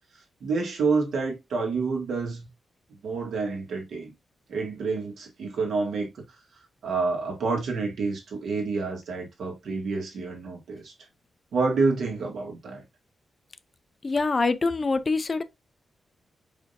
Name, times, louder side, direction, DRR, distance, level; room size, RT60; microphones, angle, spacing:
voice 1, 0.4-2.5 3.0-4.1 4.5-6.1 6.8-10.9 11.5-12.8, right 4 dB, 80° right, 1.7 m, -28 dB
voice 2, 14.0-15.4, left 3 dB, 30° left, 0.3 m, -24 dB
5.0 x 3.6 x 2.7 m
wide cardioid pair, 165°, 0 cm